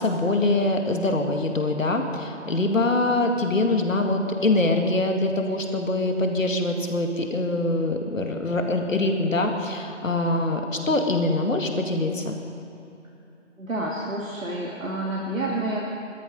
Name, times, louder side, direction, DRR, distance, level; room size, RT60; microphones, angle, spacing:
voice 1, 0.0-12.4, left 2 dB, 80° left, 3 dB, 2.2 m, -24 dB
voice 2, 13.6-15.8, right 1 dB, 85° right, -3 dB, 2.5 m, -29 dB
16.5 x 13.0 x 5.4 m, 2.8 s
figure-of-eight pair, 170°, 39 cm